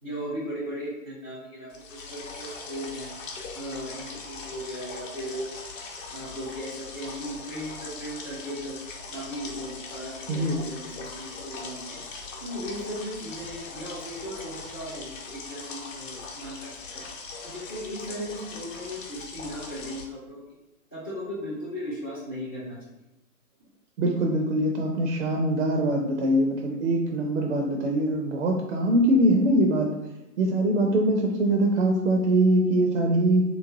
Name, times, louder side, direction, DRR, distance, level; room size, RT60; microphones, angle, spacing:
voice 1, 0.0-3.1 3.5-5.5 6.1-8.7 9.1-12.0 12.4-17.0 17.4-20.5 20.9-22.8, equal, 15° left, -9 dB, 0.3 m, -37 dB
sound 1, 1.7-20.0, left 4 dB, 55° left, 0.8 m, -40 dB
voice 2, 10.3-10.6 24.0-29.9 30.4-33.4, right 1 dB, 55° right, 1 dB, 0.5 m, -23 dB
3.2 x 3.0 x 2.6 m, 0.94 s
figure-of-eight pair, 125°, 45 cm